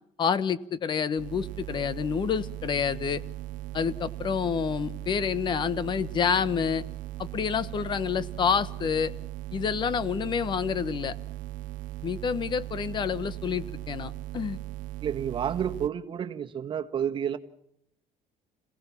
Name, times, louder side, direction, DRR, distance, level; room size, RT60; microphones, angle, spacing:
voice 1, 0.2-3.2 3.7-6.8 7.2-9.1 9.5-11.1 12.0-14.6, left 7 dB, 35° left, 18 dB, 1.1 m, -28 dB
sound 1, 1.2-15.9, right 16 dB, 70° right, 0.8 m, -38 dB
voice 2, 15.0-17.4, right 8 dB, 35° right, 9 dB, 1.6 m, -30 dB
26.5 x 17.0 x 7.3 m, 0.76 s
cardioid pair, 145°, 14 cm